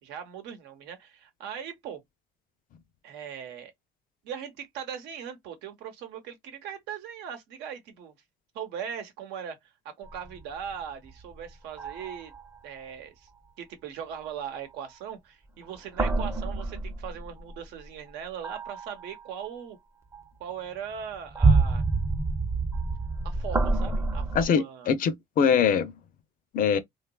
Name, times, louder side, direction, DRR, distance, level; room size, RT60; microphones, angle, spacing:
voice 1, 0.0-2.0 3.0-3.7 4.2-8.1 8.5-12.3 12.6-13.3 13.6-19.8 20.4-21.8 23.2-24.9, right 8 dB, 90° right, 0.9 m, -39 dB
sound 1, 10.0-11.4 11.8-12.6 15.6-17.6 18.4-19.5 20.1-20.2 20.9-24.5, right 3 dB, 15° right, 0.5 m, -27 dB
voice 2, 24.3-25.9 26.5-26.8, left 7 dB, 55° left, 0.5 m, -23 dB
2.9 x 2.3 x 2.2 m
cardioid pair, 110°, 17 cm